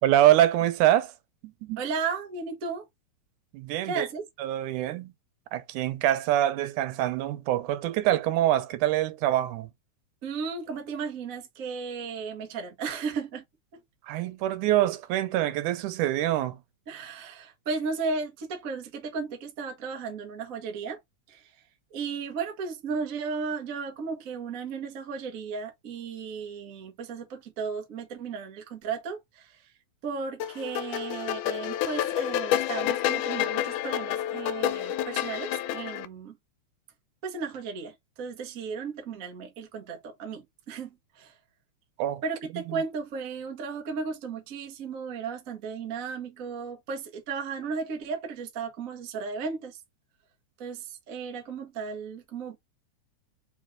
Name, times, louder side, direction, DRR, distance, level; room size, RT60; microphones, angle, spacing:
voice 1, 0.0-1.1 1.4-1.8 3.5-4.1 4.4-5.1 5.5-9.7 14.0-16.6 42.0-42.2 42.5-42.8, right 13 dB, 85° right, 2.2 m, -25 dB
voice 2, 1.8-2.9 3.8-4.3 10.2-13.4 16.9-21.0 21.3-21.6 21.9-29.7 30.0-36.4 37.2-41.3 42.2-49.8 50.6-52.6, right 5 dB, 65° right, 0.8 m, -35 dB
sound 1, 30.4-36.1, left 11 dB, 85° left, 2.1 m, -29 dB
4.7 x 3.1 x 3.6 m
omnidirectional pair, 3.5 m